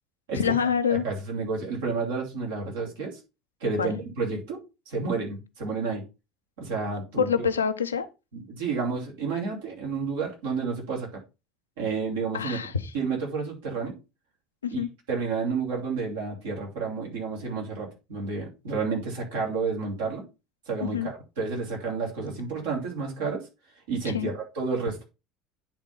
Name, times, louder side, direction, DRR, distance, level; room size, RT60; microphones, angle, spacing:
voice 1, 0.3-1.0 3.8-3.9 7.2-8.1 12.3-12.9 14.6-14.9 20.8-21.1 24.1-24.3, left 7 dB, 80° left, 0.6 m, -26 dB
voice 2, 0.9-3.2 3.6-4.6 4.9-6.0 6.6-7.5 8.3-11.1 11.8-12.6 12.9-13.9 14.7-14.8 15.1-20.2 20.7-23.5 23.9-25.0, right 4 dB, 65° right, 2.9 m, -30 dB
9.1 x 3.7 x 5.5 m
figure-of-eight pair, 65°, 0 cm